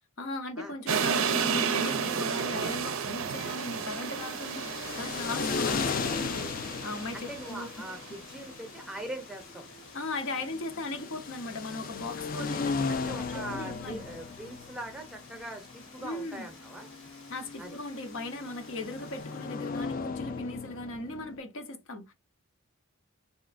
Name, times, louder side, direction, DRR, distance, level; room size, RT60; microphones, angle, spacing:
voice 1, 0.2-7.7 9.9-14.0 16.0-16.5 17.3-22.1, left 2 dB, 65° left, 0.7 m, -38 dB
sound 1, 0.9-8.0, right 6 dB, 70° right, 0.4 m, -32 dB
Water, 2.6-19.8, left 3 dB, 80° left, 1.4 m, -53 dB
sound 2, 3.5-21.4, left 4 dB, 40° left, 0.3 m, -37 dB
voice 2, 7.1-9.7 12.9-16.9 17.6-17.8, right 1 dB, 5° right, 0.7 m, -42 dB
3.1 x 2.8 x 2.5 m
head